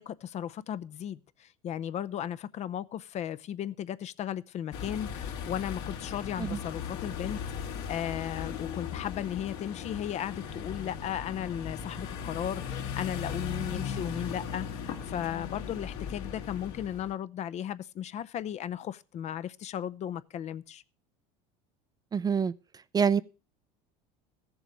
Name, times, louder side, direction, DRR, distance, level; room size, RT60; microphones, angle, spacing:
voice 1, 0.0-7.4 7.9-20.8, left 10 dB, 40° left, 0.6 m, -36 dB
sound 1, 4.7-17.1, left 7 dB, 75° left, 2.5 m, -38 dB
voice 2, 22.1-22.5 22.9-23.2, right 6 dB, 20° right, 0.5 m, -25 dB
14.0 x 7.2 x 6.1 m
supercardioid pair, 110°, 17 cm